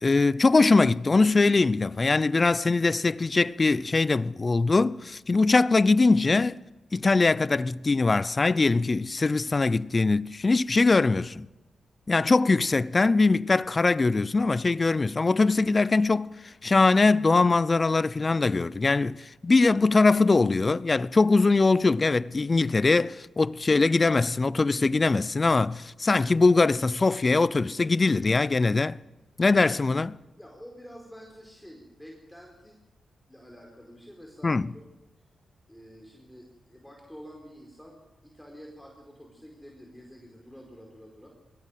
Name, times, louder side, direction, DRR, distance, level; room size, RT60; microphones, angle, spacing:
voice 1, 0.0-6.6 6.9-11.5 12.1-29.0 29.4-30.2 34.4-34.7, left 3 dB, 35° left, 0.7 m, -22 dB
voice 2, 30.4-32.8 33.3-34.8 35.7-41.3, equal, 5° left, 4.9 m, -48 dB
21.5 x 17.5 x 7.6 m
cardioid pair, 70°, 0 cm